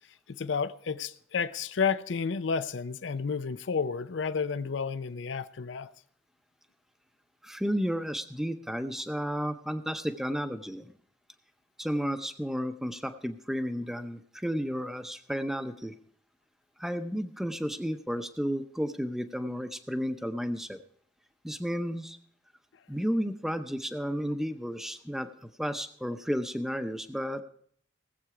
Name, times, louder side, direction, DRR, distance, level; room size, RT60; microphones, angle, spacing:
voice 1, 0.3-5.9, left 5 dB, 75° left, 0.5 m, -31 dB
voice 2, 7.4-10.9 11.8-15.9 16.8-20.8 21.4-22.2 22.9-27.4, equal, ahead, 0.6 m, -32 dB
18.5 x 7.9 x 4.8 m
head